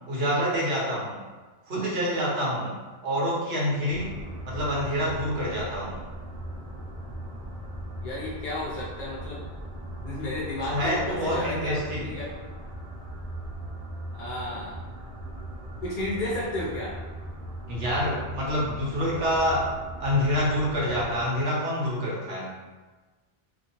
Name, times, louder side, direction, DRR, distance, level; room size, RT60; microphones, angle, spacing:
voice 1, 0.1-1.2 1.7-2.8 3.0-4.1 4.5-6.0 10.7-12.1 17.7-19.7 20.0-22.6, equal, 70° right, -4 dB, 1.1 m, -27 dB
sound 1, 3.9-21.3, right 1 dB, 50° right, 0.4 m, -39 dB
voice 2, 8.0-9.5 10.0-12.3 14.1-14.8 15.8-16.9, left 1 dB, 55° left, -7 dB, 0.7 m, -33 dB
2.7 x 2.5 x 2.9 m, 1.3 s
omnidirectional pair, 1.1 m